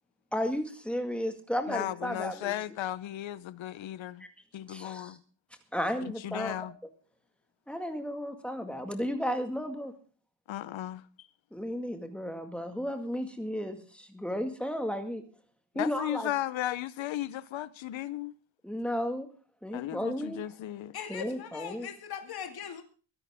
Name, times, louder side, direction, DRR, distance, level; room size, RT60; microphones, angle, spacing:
voice 1, 0.3-2.5 4.7-5.2 5.7-6.6 7.7-9.9 11.5-15.2 15.8-16.3 18.6-19.3 19.6-20.4 21.1-21.9, equal, ahead, 2.0 m, -33 dB
voice 2, 1.7-4.3 4.5-5.2 6.0-6.7 10.5-11.0 15.7-18.3 19.7-20.9, left 13 dB, 90° left, 1.1 m, -35 dB
voice 3, 20.9-22.8, left 8 dB, 55° left, 2.4 m, -40 dB
23.0 x 10.5 x 3.6 m
wide cardioid pair, 180°, 45 cm